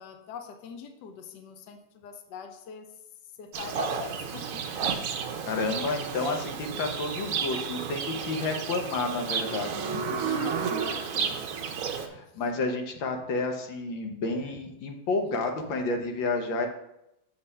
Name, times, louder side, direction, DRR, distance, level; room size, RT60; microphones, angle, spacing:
voice 1, 0.0-2.9 3.4-4.6 10.1-11.5, left 6 dB, 70° left, 6 dB, 1.3 m, -42 dB
Livestock farm animals working animals, 3.5-12.1, right 6 dB, 60° right, 0.9 m, -32 dB
voice 2, 5.4-10.0 12.0-16.7, left 3 dB, 85° left, 3 dB, 1.7 m, -30 dB
7.0 x 4.3 x 5.4 m, 0.84 s
omnidirectional pair, 2.0 m